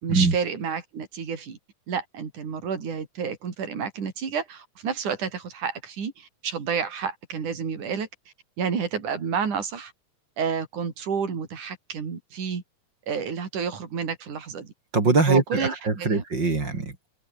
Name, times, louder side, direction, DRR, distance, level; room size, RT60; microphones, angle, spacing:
voice 1, 0.0-1.6 1.9-8.1 8.6-9.9 10.4-12.6 13.1-14.7 15.3-15.7 16.0-16.2, right 6 dB, 75° right, 5.4 m, -30 dB
voice 2, 14.9-17.1, right 3 dB, 35° right, 4.3 m, -22 dB
omnidirectional pair, 3.6 m